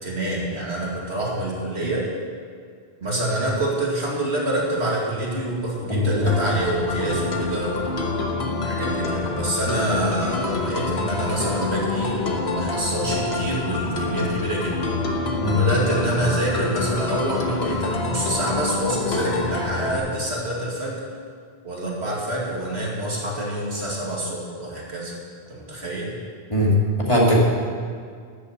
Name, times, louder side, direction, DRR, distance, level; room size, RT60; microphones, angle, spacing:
voice 1, 0.0-2.1 3.0-8.1 8.6-14.8 15.1-15.2 15.5-21.0 21.6-25.2 25.5-26.2, right 1 dB, 75° right, -4 dB, 2.8 m, -27 dB
voice 2, 5.9-6.3 15.4-15.6 26.5-27.4, left 1 dB, 30° left, -4 dB, 2.5 m, -19 dB
sound 1, 6.3-20.0, left 3 dB, 70° left, 1.5 m, -26 dB
13.0 x 7.1 x 8.6 m, 2.1 s
omnidirectional pair, 1.1 m